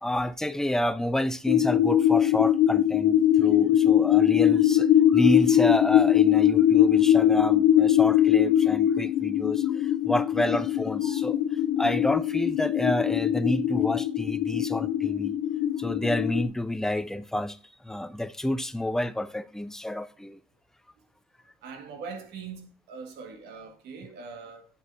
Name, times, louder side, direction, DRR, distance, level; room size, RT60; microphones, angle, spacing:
voice 1, 0.0-15.4 15.8-17.6 17.8-20.4, left 1 dB, 5° left, 0.5 m, -29 dB
sound 1, 1.5-16.5, left 11 dB, 75° left, 0.7 m, -22 dB
voice 2, 21.6-24.7, right 5 dB, 80° right, 1.8 m, -41 dB
8.8 x 7.0 x 2.7 m
cardioid pair, 110°, 17 cm